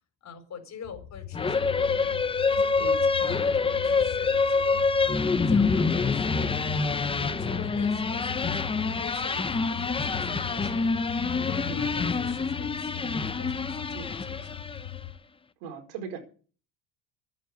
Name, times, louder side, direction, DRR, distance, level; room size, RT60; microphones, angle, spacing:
voice 1, 0.2-2.2 2.5-5.1 5.4-7.1 7.4-10.9 11.3-13.9 14.1-14.6, left 6 dB, 35° left, 6 dB, 4.9 m, -46 dB
sound 1, 0.8-15.1, left 12 dB, 55° left, 2.3 m, -39 dB
sound 2, 1.3-15.0, left 4 dB, 10° left, 0.7 m, -26 dB
voice 2, 7.2-7.6 11.7-11.9 13.9-14.1 15.6-16.2, right 6 dB, 80° right, 6 dB, 4.7 m, -40 dB
12.5 x 9.3 x 8.5 m, 0.39 s
cardioid pair, 125°, 45 cm